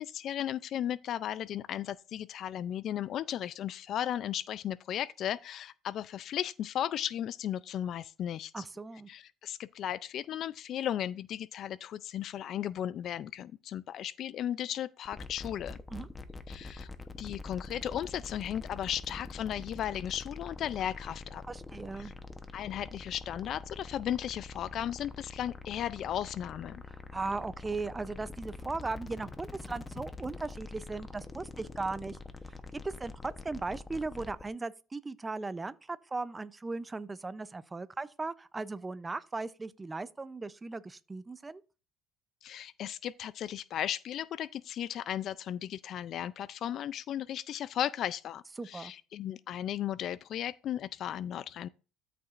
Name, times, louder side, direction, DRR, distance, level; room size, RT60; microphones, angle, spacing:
voice 1, 0.0-8.6 9.1-15.8 16.5-16.9 17.2-21.4 22.0-22.1 22.5-26.8 42.4-51.7, left 10 dB, 50° left, 0.3 m, -35 dB
voice 2, 8.5-9.1 15.9-16.1 21.5-22.1 27.1-32.2 32.8-41.6 48.6-48.9, right 3 dB, 15° right, 0.5 m, -37 dB
sound 1, 15.0-34.5, left 3 dB, 15° left, 0.9 m, -45 dB
13.0 x 6.7 x 2.5 m
cardioid pair, 135°, 0 cm